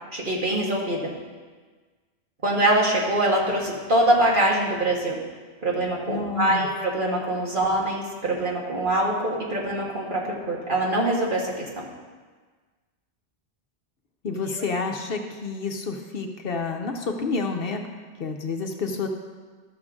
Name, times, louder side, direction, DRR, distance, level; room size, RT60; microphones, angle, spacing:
voice 1, 0.1-1.0 2.4-5.2 5.6-11.8, right 1 dB, 50° right, -3 dB, 1.7 m, -24 dB
voice 2, 6.1-6.7 7.6-7.7 14.2-17.9 18.2-19.1, left 4 dB, 60° left, 4 dB, 0.9 m, -29 dB
13.0 x 6.5 x 3.7 m, 1.4 s
omnidirectional pair, 1.2 m